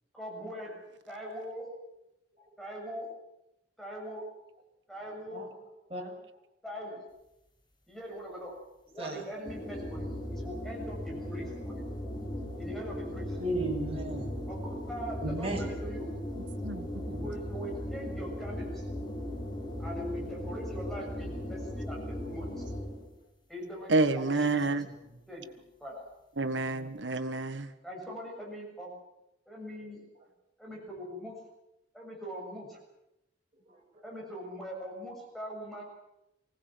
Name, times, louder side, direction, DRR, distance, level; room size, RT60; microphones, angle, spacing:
voice 1, 0.1-0.7 1.1-1.6 2.6-3.1 3.8-4.2 4.9-5.4 6.6-7.0 7.9-8.6 8.9-11.9 12.6-13.4 14.5-16.1 17.1-18.9 19.8-22.7 23.5-24.7 25.3-25.4 25.8-26.0 27.8-28.9 29.5-30.0 30.6-31.3 31.9-32.8 34.0-36.1, equal, ahead, -1 dB, 7.0 m, -41 dB
voice 2, 9.0-9.3 13.4-14.4 15.2-15.7 22.2-22.3 24.3-25.2 33.5-34.0, right 1 dB, 35° right, -1 dB, 6.6 m, -36 dB
sound 1, 9.4-23.1, left 1 dB, 25° left, 5.5 m, -37 dB
voice 3, 16.6-17.2 23.9-24.9 26.4-27.7, right 3 dB, 90° right, 10 dB, 1.6 m, -29 dB
24.5 x 18.5 x 8.0 m, 0.87 s
head